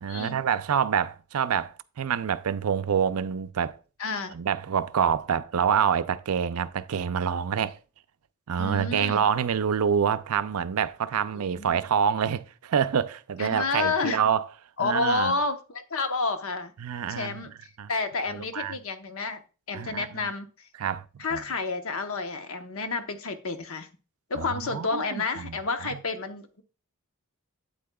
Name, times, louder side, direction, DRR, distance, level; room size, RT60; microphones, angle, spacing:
voice 1, 0.0-3.8 4.3-7.8 8.5-14.4 14.8-15.3 16.8-17.5 17.8-17.9 18.3-18.8 19.7-20.3 20.8-21.0 21.3-21.4 24.4-25.6 25.8-26.0, right 7 dB, 80° right, 0.5 m, -27 dB
voice 2, 4.0-4.3 8.6-9.2 11.3-11.8 13.4-14.2 14.8-16.7 17.0-19.4 19.7-20.7 21.2-23.9 24.3-26.6, left 3 dB, 70° left, 0.9 m, -30 dB
8.6 x 8.4 x 2.3 m
head